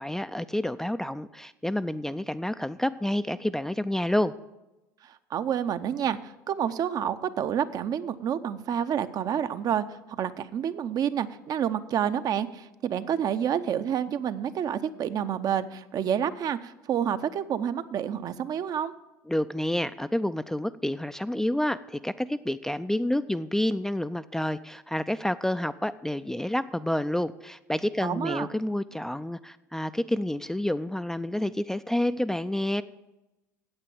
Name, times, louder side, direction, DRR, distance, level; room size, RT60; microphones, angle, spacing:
voice 1, 0.0-4.3 19.3-32.8, left 1 dB, 5° left, 11 dB, 0.3 m, -29 dB
voice 2, 5.0-18.9 28.0-28.5, right 9 dB, 45° right, 12 dB, 0.6 m, -29 dB
8.8 x 8.3 x 7.1 m, 1.0 s
hypercardioid pair, 65°, 9 cm